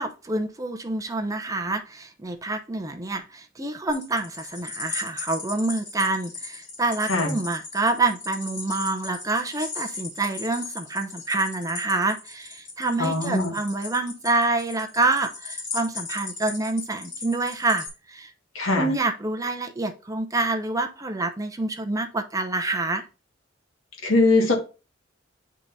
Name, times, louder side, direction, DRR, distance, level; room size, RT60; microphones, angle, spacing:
voice 1, 0.0-18.3 18.8-23.1, right 2 dB, 15° right, 0.6 m, -27 dB
sound 1, 3.9-17.9, left 4 dB, 40° left, 3.5 m, -37 dB
voice 2, 13.0-13.5 18.6-18.9 24.0-24.5, left 2 dB, 85° left, 2.0 m, -21 dB
8.9 x 3.7 x 4.1 m
head